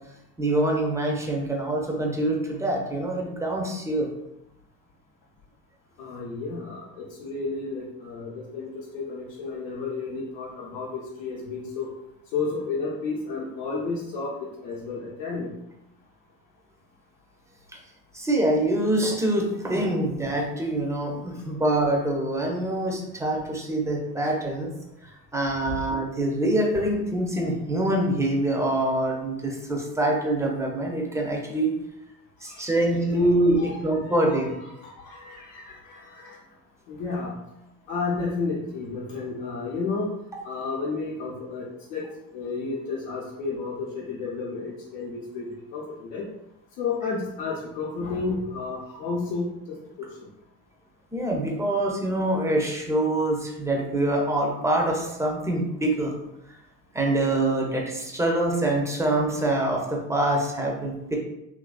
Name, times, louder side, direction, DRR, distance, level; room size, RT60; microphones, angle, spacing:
voice 1, 0.4-4.1 18.1-24.7 25.0-31.7 32.4-34.5 51.1-56.1 56.9-61.2, right 1 dB, 5° right, 0 dB, 0.5 m, -25 dB
voice 2, 6.0-11.9 12.3-15.5 32.4-32.8 33.5-36.4 36.9-37.3 37.9-40.1 40.4-42.0 42.3-46.3 46.8-49.5 50.0-50.1, left 4 dB, 75° left, -5 dB, 0.7 m, -32 dB
2.8 x 2.6 x 2.3 m, 0.86 s
hypercardioid pair, 70°, 45 cm